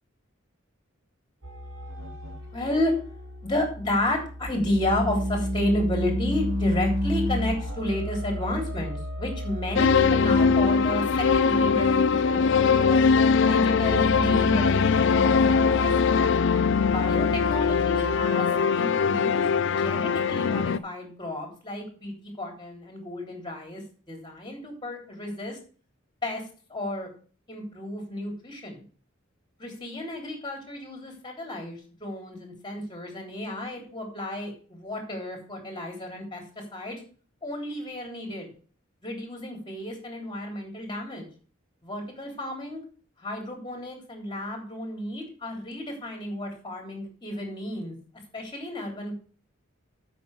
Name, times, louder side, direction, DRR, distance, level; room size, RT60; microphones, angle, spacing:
sound 1, 1.4-18.2, equal, 85° right, 3.3 m, -32 dB
voice 1, 2.5-2.9 3.4-13.0 13.4-16.3 16.9-19.5 19.8-23.8 24.1-25.6 26.2-26.4 26.7-27.1 27.5-28.8 29.6-36.4 36.7-37.0 37.4-38.5 39.0-41.3 41.8-42.8 43.2-48.0 48.3-49.1, left 1 dB, 25° left, 2 dB, 3.5 m, -32 dB
sound 2, 9.8-20.8, left 5 dB, 65° left, 0.5 m, -22 dB
8.5 x 5.8 x 6.4 m, 0.40 s
head